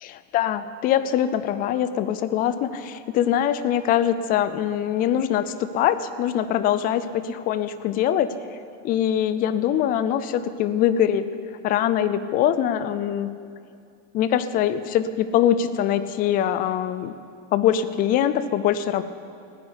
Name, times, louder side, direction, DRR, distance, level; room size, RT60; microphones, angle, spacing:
voice 1, 0.0-8.3 8.8-11.2 11.6-13.3 14.1-17.1 17.5-19.0, left 10 dB, 25° left, 14 dB, 0.4 m, -23 dB
14.5 x 9.5 x 9.8 m, 2.4 s
supercardioid pair, 160°, 38 cm